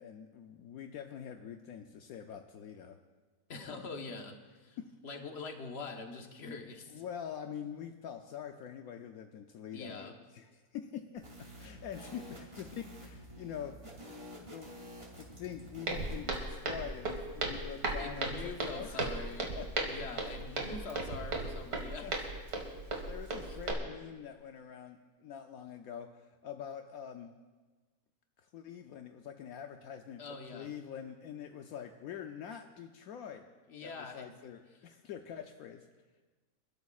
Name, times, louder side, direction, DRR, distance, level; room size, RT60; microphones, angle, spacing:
voice 1, 0.0-3.0 4.8-4.9 6.9-11.2 11.6-13.9 14.4-14.9 15.2-19.0 19.6-19.9 22.0-22.1 23.1-27.3 28.4-30.2 30.5-33.4 33.8-35.9, left 8 dB, 75° left, 5 dB, 1.1 m, -45 dB
voice 2, 3.5-7.0 9.7-10.2 17.9-19.5 19.8-22.1 23.4-23.6 30.2-30.7 33.7-34.3, left 4 dB, 45° left, 4 dB, 1.3 m, -44 dB
sound 1, 11.2-16.2, equal, 40° right, 2.9 m, -50 dB
Walk footsteps, 15.9-23.7, right 2 dB, 80° right, 2.3 m, -36 dB
27.0 x 12.5 x 2.4 m, 1.3 s
omnidirectional pair, 1.6 m